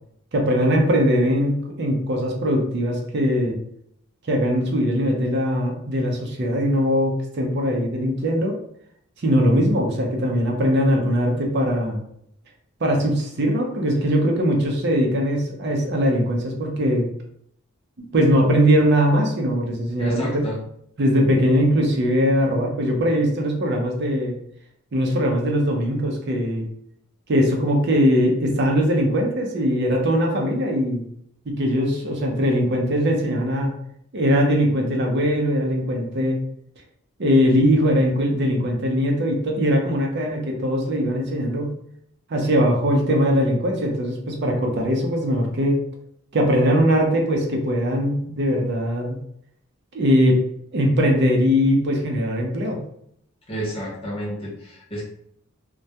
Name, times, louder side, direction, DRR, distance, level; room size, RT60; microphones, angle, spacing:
voice 1, 0.3-3.6 4.3-8.5 9.2-12.0 12.8-17.1 18.1-20.4 21.0-24.4 24.9-26.7 27.3-31.0 31.5-33.7 34.1-36.4 37.2-41.7 42.3-45.8 46.3-49.2 49.9-50.4 50.7-52.8, equal, 55° right, 1 dB, 0.5 m, -21 dB
voice 2, 20.0-20.6 53.5-55.1, equal, 25° left, -4 dB, 0.7 m, -31 dB
2.2 x 2.1 x 2.7 m, 0.70 s
head